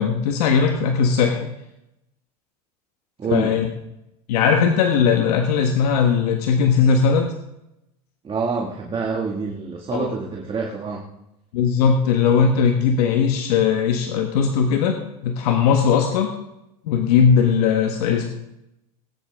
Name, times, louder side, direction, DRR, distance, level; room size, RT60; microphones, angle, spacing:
voice 1, 0.0-1.5 3.3-3.7 4.3-7.3 9.9-10.1 11.5-15.0 15.2-16.3 16.8-18.3, left 6 dB, 80° left, 3 dB, 1.4 m, -19 dB
voice 2, 3.2-3.6 8.2-11.1, right 4 dB, 30° right, -1 dB, 2.1 m, -26 dB
19.0 x 9.9 x 3.6 m, 0.86 s
supercardioid pair, 105°, 20 cm